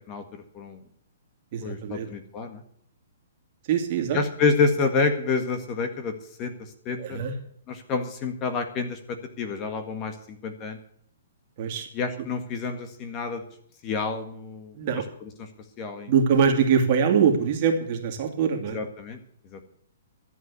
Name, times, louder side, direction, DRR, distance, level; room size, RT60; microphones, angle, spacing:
voice 1, 0.1-0.8 1.6-2.6 4.1-6.1 6.4-7.2 7.7-10.8 11.9-13.4 13.8-14.8 15.8-16.1 18.7-19.2 19.5-19.6, left 4 dB, 25° left, 7 dB, 1.8 m, -28 dB
voice 2, 1.5-2.1 3.7-4.2 7.0-7.3 11.6-11.9 14.8-15.0 16.1-18.8, right 6 dB, 40° right, 3 dB, 2.6 m, -23 dB
13.0 x 8.3 x 8.3 m, 0.65 s
hypercardioid pair, 155°, 0 cm